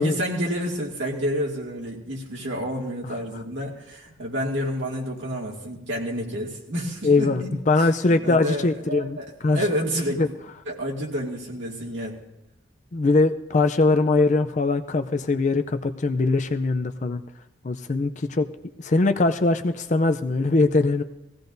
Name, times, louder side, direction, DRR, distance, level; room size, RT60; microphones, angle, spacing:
voice 1, 0.0-7.9 8.2-9.3 9.5-10.3 10.7-12.2, equal, 65° right, -1 dB, 2.2 m, -29 dB
voice 2, 7.0-9.2 9.4-9.6 10.2-10.3 12.9-17.2 17.6-18.5 18.8-21.0, left 3 dB, 35° left, 8 dB, 0.5 m, -21 dB
20.0 x 16.0 x 2.6 m, 0.98 s
head